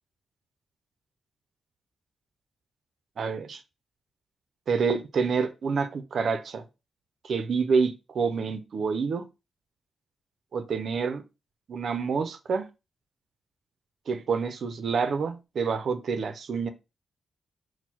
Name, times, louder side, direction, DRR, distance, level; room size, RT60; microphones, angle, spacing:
voice 1, 3.2-3.6 4.7-6.6 7.2-9.2 10.5-11.2 11.7-12.7 14.1-16.7, right 5 dB, 60° right, 0.4 m, -27 dB
4.3 x 2.0 x 4.3 m
cardioid pair, 120°, 0 cm